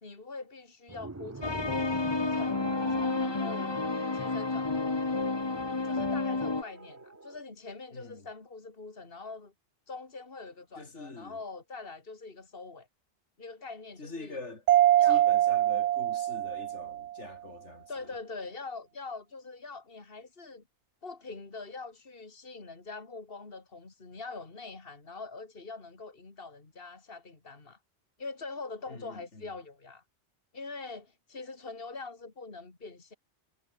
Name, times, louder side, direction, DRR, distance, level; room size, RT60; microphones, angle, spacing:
voice 1, 0.0-1.7 2.1-3.8 4.1-5.0 5.8-9.5 9.9-12.9 13.4-14.4 15.0-15.2 17.9-20.6 21.0-27.8 28.2-30.0 30.5-33.1, left 3 dB, 55° left, 2.9 m, -43 dB
sound 1, 0.9-7.4, right 3 dB, 15° right, 0.7 m, -44 dB
sound 2, 1.4-6.6, left 3 dB, 25° left, 1.0 m, -30 dB
voice 2, 7.9-8.3 10.8-11.4 14.0-14.6 15.0-18.1 28.9-29.5, left 3 dB, 80° left, 3.5 m, -44 dB
Mallet percussion, 14.7-17.2, right 13 dB, 80° right, 0.9 m, -24 dB
omnidirectional pair, 1.2 m